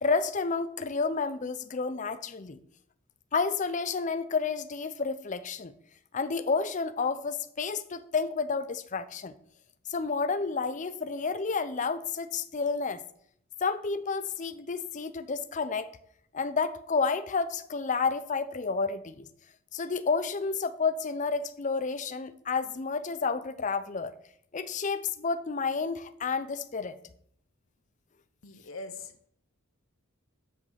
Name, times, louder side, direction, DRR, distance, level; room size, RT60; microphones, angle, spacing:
voice 1, 0.0-2.6 3.3-5.7 6.1-9.3 9.9-13.0 13.6-15.9 16.3-19.3 19.7-24.1 24.5-27.0, left 4 dB, 35° left, 0.5 m, -30 dB
voice 2, 28.4-29.3, left 3 dB, 70° left, 0.9 m, -42 dB
9.1 x 5.4 x 5.6 m
head